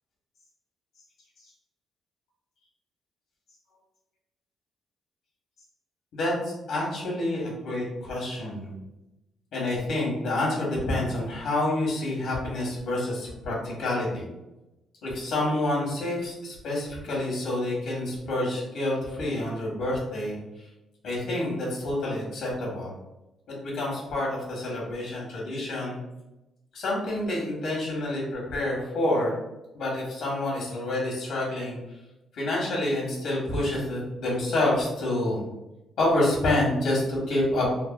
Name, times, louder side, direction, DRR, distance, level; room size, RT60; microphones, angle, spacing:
voice 1, 6.1-8.7 9.5-14.3 15.0-20.4 21.0-22.9 23.6-26.0 26.7-29.3 29.7-31.8 32.3-35.5 36.0-37.7, left 1 dB, 75° left, -4 dB, 1.2 m, -28 dB
3.4 x 2.2 x 2.4 m, 0.97 s
cardioid pair, 100°, 0 cm